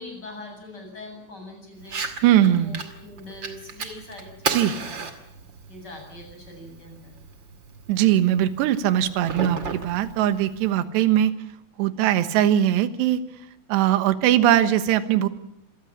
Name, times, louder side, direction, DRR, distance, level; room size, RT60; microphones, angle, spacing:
voice 1, 0.0-2.0 2.3-5.1 5.7-7.1, left 2 dB, 20° left, 3 dB, 8.4 m, -42 dB
Fire, 1.8-10.8, right 5 dB, 40° right, 1.6 m, -35 dB
voice 2, 2.2-2.8 4.5-4.8 7.9-11.3 11.8-13.2 13.7-15.3, right 11 dB, 70° right, 11 dB, 3.2 m, -20 dB
26.5 x 19.0 x 8.5 m, 0.76 s
omnidirectional pair, 5.6 m